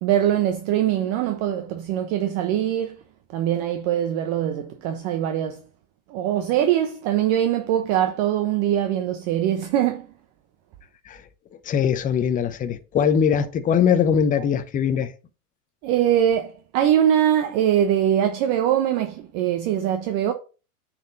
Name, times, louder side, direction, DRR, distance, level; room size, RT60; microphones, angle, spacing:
voice 1, 0.0-3.0 3.3-5.6 6.1-10.1 15.8-20.3, right 10 dB, 40° right, 1.0 m, -22 dB
voice 2, 11.7-15.1, left 7 dB, 20° left, 0.7 m, -21 dB
9.2 x 4.5 x 3.9 m
hypercardioid pair, 110°, 45 cm